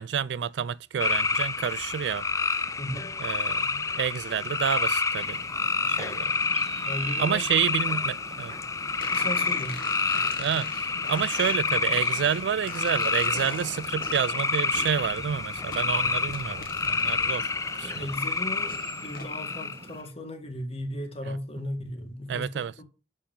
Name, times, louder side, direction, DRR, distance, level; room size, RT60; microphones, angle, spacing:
voice 1, 0.0-2.2 3.2-5.4 5.9-6.4 7.2-8.5 10.1-18.1 21.3-21.4 22.3-22.7, right 8 dB, 70° right, 0.3 m, -29 dB
sound 1, 1.0-19.9, left 4 dB, 20° left, 0.4 m, -29 dB
voice 2, 2.8-3.1 6.9-7.4 9.1-9.9 17.8-22.8, left 1 dB, 35° left, 1.7 m, -36 dB
sound 2, 5.2-20.0, right 3 dB, 35° right, 1.0 m, -45 dB
sound 3, 9.0-17.3 17.7-19.3, left 4 dB, 55° left, 1.3 m, -43 dB
6.9 x 5.6 x 7.1 m
head